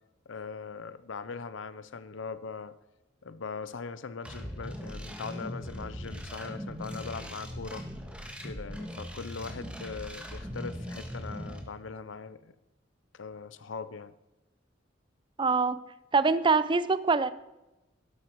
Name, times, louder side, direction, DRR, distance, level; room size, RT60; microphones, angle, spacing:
voice 1, 0.3-2.7 3.2-7.8 8.4-12.5 13.1-14.1, left 5 dB, 70° left, 14 dB, 0.6 m, -40 dB
sound 1, 4.2-11.6, equal, 5° right, 1.5 m, -40 dB
voice 2, 15.4-15.8 16.1-17.3, right 4 dB, 25° right, 15 dB, 0.5 m, -24 dB
12.5 x 12.5 x 4.6 m, 0.97 s
head